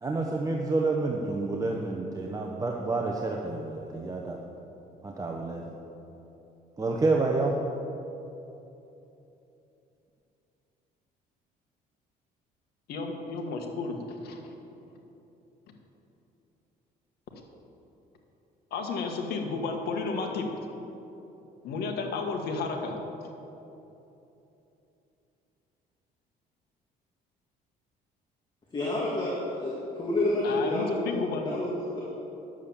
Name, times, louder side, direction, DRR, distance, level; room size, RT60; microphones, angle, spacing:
voice 1, 0.0-4.4 5.0-5.7 6.8-7.6, right 3 dB, 20° right, 0 dB, 0.9 m, -29 dB
voice 2, 12.9-14.5 18.7-20.5 21.6-22.9 30.4-31.5, left 4 dB, 70° left, 3 dB, 1.6 m, -32 dB
voice 3, 28.7-30.9 31.5-32.0, left 1 dB, 25° left, -5 dB, 2.1 m, -29 dB
10.0 x 7.5 x 7.3 m, 3.0 s
cardioid pair, 110°, 17 cm